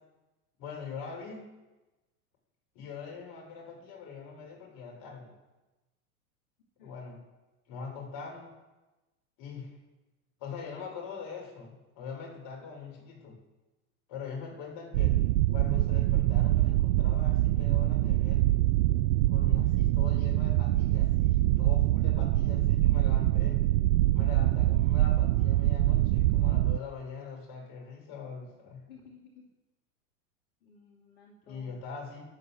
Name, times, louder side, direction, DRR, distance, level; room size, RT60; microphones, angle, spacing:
voice 1, 0.6-1.4 2.7-5.3 6.8-7.2 7.7-8.5 9.4-9.8 10.4-13.4 14.1-15.2 15.5-18.5 19.3-23.6 24.1-28.8 31.4-32.2, left 5 dB, 45° left, 1 dB, 6.6 m, -42 dB
sound 1, 14.9-26.8, right 15 dB, 55° right, 0.5 m, -24 dB
voice 2, 28.9-29.5 30.6-31.8, left 5 dB, 70° left, -1 dB, 2.9 m, -54 dB
13.0 x 11.0 x 8.4 m, 1.1 s
hypercardioid pair, 95°, 46 cm